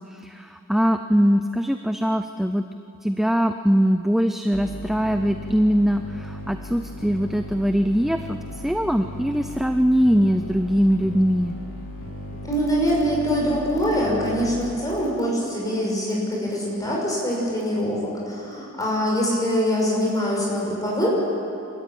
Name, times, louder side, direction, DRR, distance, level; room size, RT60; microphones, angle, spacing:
voice 1, 0.1-2.6 3.0-8.4 8.6-11.5, equal, ahead, 7 dB, 0.5 m, -21 dB
sound 1, 4.5-14.8, left 1 dB, 65° left, 3.5 m, -37 dB
voice 2, 12.4-21.1, equal, 15° left, -3 dB, 6.0 m, -24 dB
27.0 x 13.5 x 9.0 m, 2.7 s
head